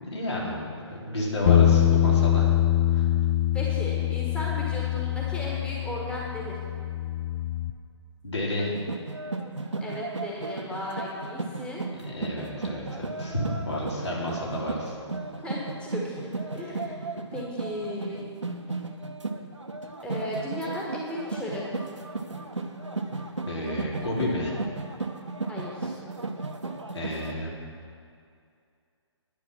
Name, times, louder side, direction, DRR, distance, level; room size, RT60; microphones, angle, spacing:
voice 1, 0.0-2.5 2.9-3.1 8.2-8.7 12.1-15.0 23.4-24.5 26.9-27.5, left 1 dB, 70° left, -3 dB, 3.5 m, -31 dB
Bass guitar, 1.5-7.7, left 11 dB, 30° left, 0.5 m, -24 dB
voice 2, 3.5-6.6 9.8-11.8 15.4-17.0 17.3-18.2 20.0-21.7 25.5-26.0, left 1 dB, 5° left, -4 dB, 1.5 m, -35 dB
sound 1, 8.6-27.3, right 3 dB, 85° right, 1.0 m, -35 dB
10.5 x 9.5 x 6.1 m, 2.4 s
figure-of-eight pair, 135°, 15 cm